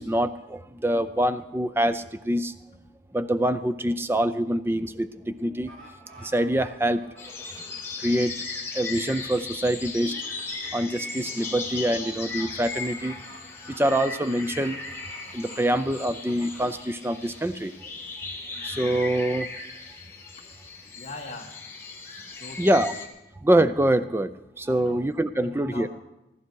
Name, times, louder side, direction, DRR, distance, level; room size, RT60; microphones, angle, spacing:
voice 1, 0.0-2.5 3.1-5.7 6.2-7.0 8.0-8.5 8.7-10.3 10.7-13.2 13.7-14.8 15.3-17.7 18.6-19.5 22.6-22.9 23.4-25.9, right 1 dB, 15° right, 12 dB, 0.5 m, -25 dB
sound 1, 5.7-7.7 10.1-12.5 13.0-13.4 13.6-14.2 14.6-16.8 17.3-17.4, right 1 dB, 80° right, 4.3 m, -48 dB
sound 2, 7.2-23.1, left 4 dB, 15° left, 1.5 m, -37 dB
voice 2, 21.0-21.6 22.4-22.8 24.6-25.0 25.3-25.9, left 2 dB, 35° left, -1 dB, 1.8 m, -41 dB
15.0 x 14.0 x 4.7 m, 0.94 s
head